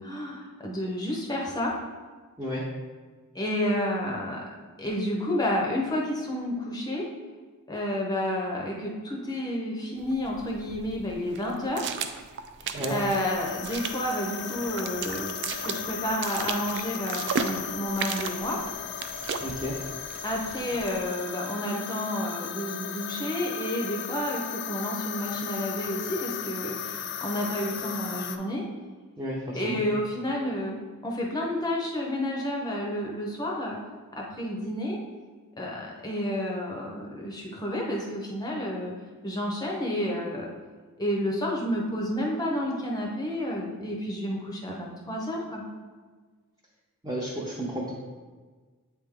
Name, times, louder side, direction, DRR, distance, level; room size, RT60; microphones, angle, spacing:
voice 1, 0.0-1.7 3.3-4.4 4.8-7.1 7.7-11.9 12.6-18.6 20.2-28.6 29.5-30.7 31.0-33.8 34.2-35.0 35.6-38.9 39.2-40.5 41.0-45.6, left 1 dB, 15° left, -2 dB, 0.7 m, -30 dB
sound 1, 10.0-21.0, right 6 dB, 50° right, 0.4 m, -36 dB
sound 2, 12.9-28.4, left 8 dB, 50° left, 0.4 m, -36 dB
voice 2, 19.4-19.8 29.2-29.8 47.0-47.9, equal, 15° right, -5 dB, 0.7 m, -32 dB
8.2 x 3.4 x 3.6 m, 1.4 s
head